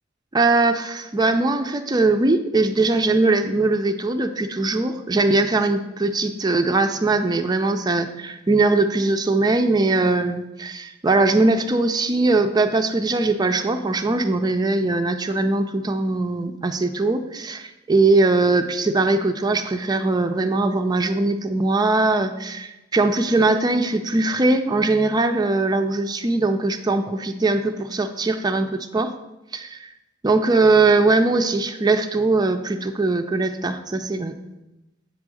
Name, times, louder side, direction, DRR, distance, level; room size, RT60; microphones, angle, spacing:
voice 1, 0.3-29.1 29.5-29.9 30.2-34.3, right 3 dB, 20° right, 7 dB, 0.4 m, -21 dB
8.3 x 3.6 x 6.3 m, 0.97 s
head